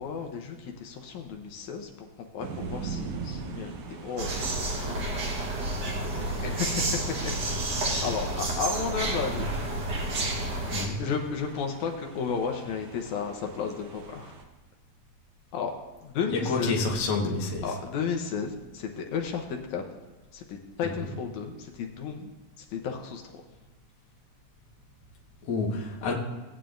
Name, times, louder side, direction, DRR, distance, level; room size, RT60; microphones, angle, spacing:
voice 1, 0.0-1.9 2.3-4.4 4.9-5.2 5.6-5.8 6.1-7.3 7.9-9.5 11.0-14.3 15.5-15.7 16.0-16.8 17.6-19.8 20.3-22.3 22.6-23.3, left 6 dB, 75° left, 3 dB, 2.1 m, -33 dB
sound 1, 2.4-14.4, right 5 dB, 75° right, 2.3 m, -43 dB
sound 2, 4.2-10.9, right 2 dB, 50° right, 1.4 m, -30 dB
voice 2, 10.7-11.0 16.3-17.6 21.0-21.1 25.4-26.1, left 3 dB, 45° left, -1 dB, 1.6 m, -28 dB
17.5 x 8.9 x 2.5 m, 1.2 s
omnidirectional pair, 3.5 m